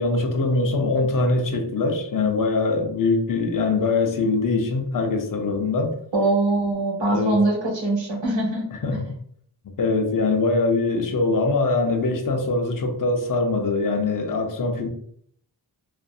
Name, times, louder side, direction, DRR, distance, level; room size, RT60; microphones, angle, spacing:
voice 1, 0.0-6.0 7.1-7.4 8.8-9.2 9.8-14.9, left 3 dB, 45° left, 4 dB, 0.6 m, -22 dB
voice 2, 6.1-8.7 8.9-9.0, right 2 dB, 70° right, -1 dB, 1.0 m, -22 dB
2.6 x 2.4 x 2.3 m, 0.63 s
wide cardioid pair, 75°, 46 cm